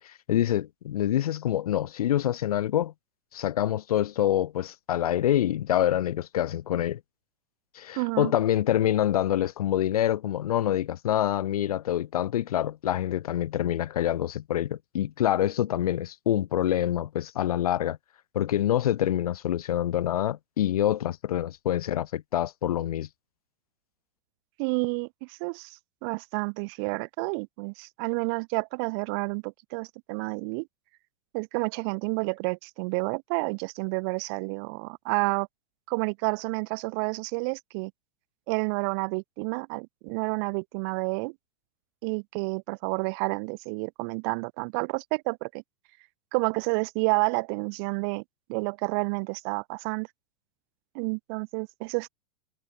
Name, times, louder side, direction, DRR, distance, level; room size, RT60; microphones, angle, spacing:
voice 1, 0.0-2.9 3.3-7.0 7.7-18.0 18.3-23.1, left 11 dB, 85° left, 2.6 m, -26 dB
voice 2, 8.0-8.3 24.6-30.7 31.3-35.5 35.9-37.9 38.5-41.3 42.0-45.6 46.3-48.2 48.5-50.1 50.9-52.1, right 34 dB, 40° right, 3.6 m, -30 dB
supercardioid pair, 165°, 19 cm